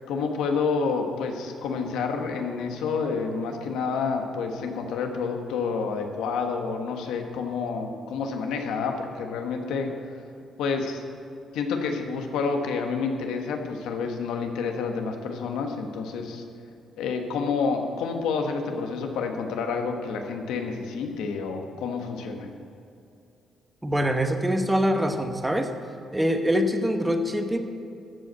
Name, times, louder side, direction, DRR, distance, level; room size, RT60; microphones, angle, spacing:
voice 1, 0.1-9.9 10.6-11.0 11.5-16.4 17.0-22.5, left 5 dB, 90° left, 4 dB, 1.3 m, -29 dB
voice 2, 23.8-25.7 26.1-27.6, equal, 10° right, 5 dB, 1.1 m, -24 dB
13.5 x 5.3 x 8.2 m, 2.6 s
cardioid pair, 90°, 0 cm